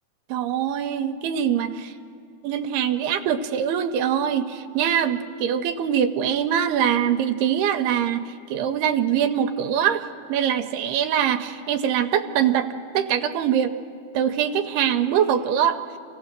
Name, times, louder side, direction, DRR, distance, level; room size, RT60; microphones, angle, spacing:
voice 1, 0.3-1.9 2.4-10.0 10.3-12.7 12.9-13.7 14.1-15.8, right 9 dB, 80° right, 9 dB, 2.6 m, -23 dB
26.5 x 17.0 x 6.7 m, 2.6 s
omnidirectional pair, 4.7 m